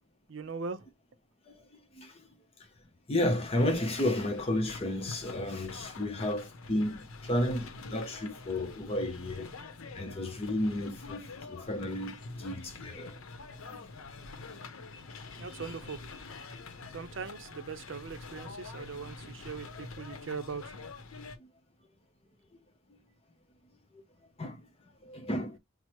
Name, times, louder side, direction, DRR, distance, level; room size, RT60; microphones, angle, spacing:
voice 1, 0.3-0.9 15.4-16.0 16.9-20.8, right 5 dB, 60° right, 0.5 m, -40 dB
voice 2, 1.9-2.3 3.1-9.5 9.9-13.2 13.6-13.8 14.5-14.6 14.9-15.0 15.4-15.7 16.5-16.6 21.4-21.5 22.9-23.0 23.9-24.0 24.4-24.6 25.0-25.6, left 1 dB, 25° left, 0.6 m, -33 dB
sound 1, 3.5-21.4, left 3 dB, 75° left, 0.7 m, -46 dB
6.0 x 2.0 x 2.9 m
head